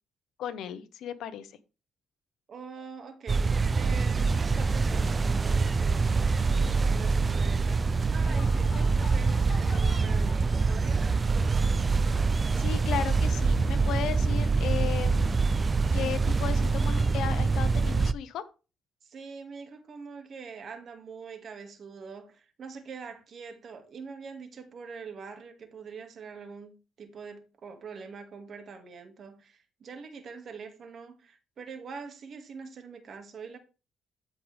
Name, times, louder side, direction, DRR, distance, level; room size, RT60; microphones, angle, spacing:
voice 1, 0.4-1.5 12.6-15.3 15.9-18.4, left 9 dB, 80° left, 1.2 m, -35 dB
voice 2, 2.5-11.7 19.0-33.6, right 5 dB, 55° right, 2.2 m, -44 dB
sound 1, 3.3-18.1, right 4 dB, 30° right, 0.5 m, -25 dB
Laughter, 8.0-11.3, left 5 dB, 50° left, 1.8 m, -47 dB
13.5 x 5.2 x 3.5 m
cardioid pair, 90°, 0 cm